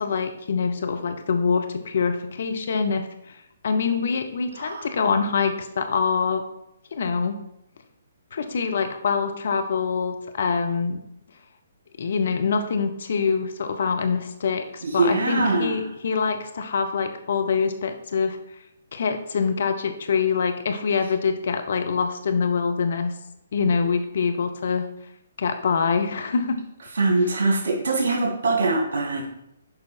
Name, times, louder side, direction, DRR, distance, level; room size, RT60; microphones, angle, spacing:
voice 1, 0.0-3.1 3.6-6.4 6.9-7.4 8.3-11.0 12.0-18.4 18.9-23.1 23.5-24.9 25.4-26.6 27.2-27.4, left 5 dB, 50° left, 6 dB, 0.8 m, -25 dB
voice 2, 14.8-15.7 27.0-29.3, right 3 dB, 55° right, 1 dB, 2.1 m, -22 dB
6.9 x 5.0 x 4.5 m, 0.83 s
figure-of-eight pair, 130°, 0 cm